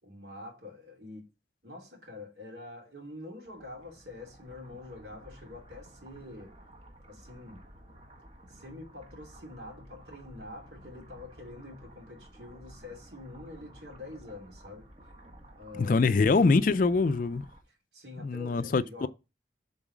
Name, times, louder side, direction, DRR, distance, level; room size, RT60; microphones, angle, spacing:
voice 1, 0.0-1.3 1.6-6.6 7.1-7.6 8.5-14.9 15.6-16.1 17.7-19.1, left 2 dB, 65° right, 3.0 m, -46 dB
sound 1, 3.4-17.6, right 1 dB, 35° right, 1.3 m, -53 dB
voice 2, 15.8-17.4 18.2-19.1, left 4 dB, 45° left, 0.4 m, -24 dB
7.5 x 4.0 x 6.1 m
head